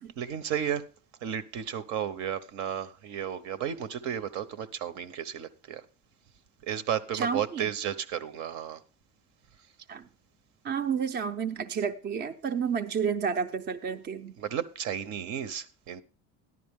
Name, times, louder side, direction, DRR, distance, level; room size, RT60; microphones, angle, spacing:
voice 1, 0.2-0.8 1.2-5.8 6.7-8.8 14.4-16.0, right 9 dB, 65° right, 1.0 m, -33 dB
voice 2, 7.1-7.6 9.9-10.0 10.6-14.3, right 6 dB, 35° right, 0.6 m, -30 dB
13.5 x 11.0 x 3.6 m
cardioid pair, 150°, 31 cm